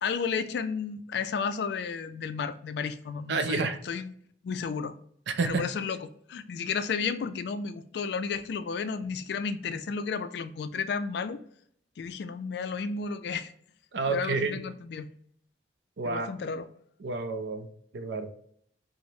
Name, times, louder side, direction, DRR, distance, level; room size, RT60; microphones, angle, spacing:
voice 1, 0.0-4.1 4.4-4.9 5.4-11.4 12.0-13.5 14.1-15.1 16.1-16.7, left 5 dB, 70° left, 11 dB, 0.3 m, -32 dB
voice 2, 3.3-3.8 5.3-5.7 13.9-14.6 16.0-16.3 17.0-17.7 17.9-18.3, right 4 dB, 75° right, 9 dB, 0.4 m, -29 dB
4.6 x 2.0 x 2.7 m, 0.64 s
head